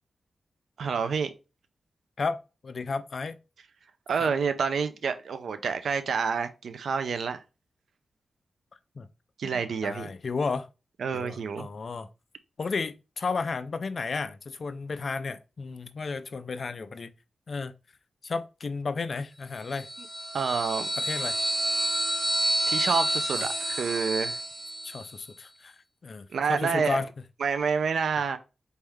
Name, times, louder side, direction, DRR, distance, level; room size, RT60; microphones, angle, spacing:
voice 1, 0.8-1.3 4.1-7.4 9.4-10.1 11.0-11.7 20.3-20.9 22.7-24.4 26.3-27.0 27.4-28.4, right 5 dB, 80° right, 0.5 m, -28 dB
voice 2, 2.2-3.4 4.2-4.3 9.0-9.1 9.4-10.7 11.1-12.1 12.6-17.1 17.5-17.7 18.2-19.9 21.0-21.4 23.4-23.5 24.8-25.7 26.0-27.1, left 4 dB, 50° left, 0.4 m, -33 dB
sound 1, 19.7-25.1, right 1 dB, 40° right, 1.3 m, -29 dB
4.2 x 3.6 x 3.4 m
wide cardioid pair, 95°, 0 cm